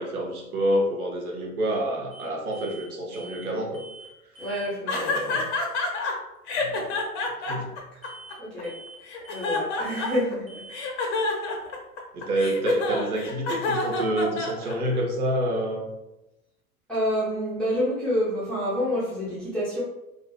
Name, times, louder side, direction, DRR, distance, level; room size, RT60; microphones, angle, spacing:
voice 1, 0.0-3.8 4.8-5.5 6.6-6.9 7.5-7.7 12.1-15.9, right 1 dB, 70° right, -1 dB, 0.8 m, -28 dB
sound 1, 2.1-2.3 2.5-2.9 3.1-3.5 3.7-4.1 4.3-4.7 8.0-8.4 8.6-9.0 9.2-9.6 9.9-10.2 10.5-10.8, right 2 dB, 25° right, 1.1 m, -45 dB
voice 2, 4.4-5.4 8.4-8.8 9.3-10.6 16.9-19.8, equal, ahead, -11 dB, 0.4 m, -28 dB
sound 2, 4.9-6.1 6.5-8.6 9.1-10.3 10.7-15.0, left 3 dB, 50° left, 0.6 m, -28 dB
2.4 x 2.4 x 2.3 m, 0.94 s
figure-of-eight pair, 90°, 45 cm